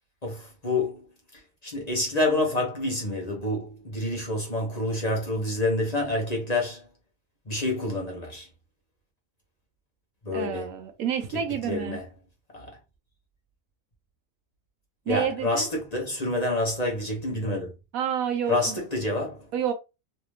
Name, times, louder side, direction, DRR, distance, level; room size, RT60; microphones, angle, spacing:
voice 1, 0.2-1.0 1.6-6.8 7.5-8.5 10.2-10.7 11.7-12.0 12.5-12.8 15.1-17.7 18.5-19.5, left 2 dB, 30° left, 1.0 m, -28 dB
voice 2, 10.3-12.0 15.1-15.7 17.9-18.8 19.5-19.7, right 8 dB, 80° right, 1.1 m, -29 dB
3.3 x 2.9 x 3.1 m
omnidirectional pair, 1.5 m